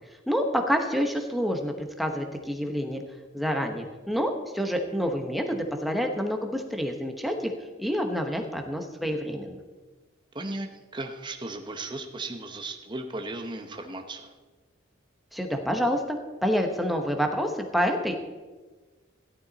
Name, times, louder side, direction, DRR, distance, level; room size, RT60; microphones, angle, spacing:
voice 1, 0.3-3.0 3.3-7.5 7.8-9.6 15.3-18.3, equal, ahead, 4 dB, 1.0 m, -28 dB
voice 2, 10.3-14.3, right 2 dB, 25° right, 5 dB, 0.8 m, -36 dB
14.5 x 12.0 x 4.1 m, 1.3 s
head